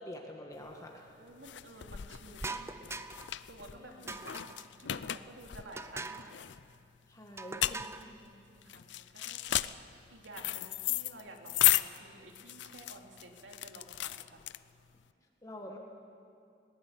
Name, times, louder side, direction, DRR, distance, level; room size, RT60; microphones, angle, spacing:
voice 1, 0.0-1.1 3.8-4.1 7.1-7.9 15.4-15.8, left 1 dB, 20° left, 1 dB, 1.6 m, -46 dB
sound 1, 0.6-15.0, left 14 dB, 70° left, 0.5 m, -35 dB
voice 2, 1.2-3.1 3.5-6.4 7.8-14.4, right 1 dB, 80° right, 2 dB, 2.7 m, -52 dB
sound 2, 2.4-3.4 4.1-4.7 5.8-6.3 7.4-8.1, right 3 dB, 15° right, 0.6 m, -42 dB
21.0 x 18.0 x 8.6 m, 2.5 s
head